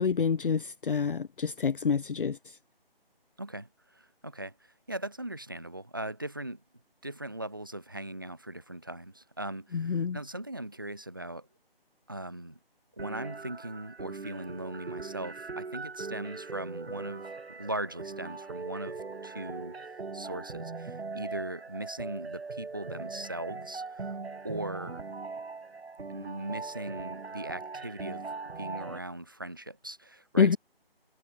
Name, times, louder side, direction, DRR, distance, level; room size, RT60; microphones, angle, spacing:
voice 1, 0.0-2.6 9.7-10.2 30.4-30.6, left 6 dB, 60° left, 0.5 m, -27 dB
voice 2, 3.4-6.6 7.0-11.5 12.1-12.6 13.0-24.1 24.4-25.0 26.1-30.6, right 1 dB, 20° right, 0.6 m, -39 dB
sound 1, 13.0-29.0, right 4 dB, 85° right, 1.3 m, -40 dB
figure-of-eight pair, 160°, 30 cm